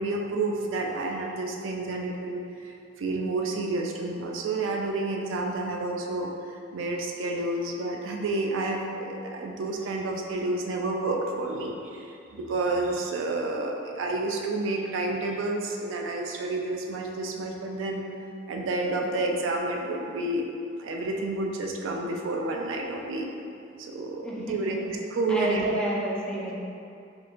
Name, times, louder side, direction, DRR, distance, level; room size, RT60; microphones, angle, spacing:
voice 1, 0.0-2.7 3.0-18.0 18.5-20.5 20.8-23.3 23.8-25.7, right 2 dB, 75° right, 1 dB, 0.4 m, -30 dB
voice 2, 24.2-24.8 25.3-26.5, right 1 dB, 5° left, -6 dB, 0.5 m, -30 dB
4.6 x 2.4 x 2.4 m, 2.6 s
head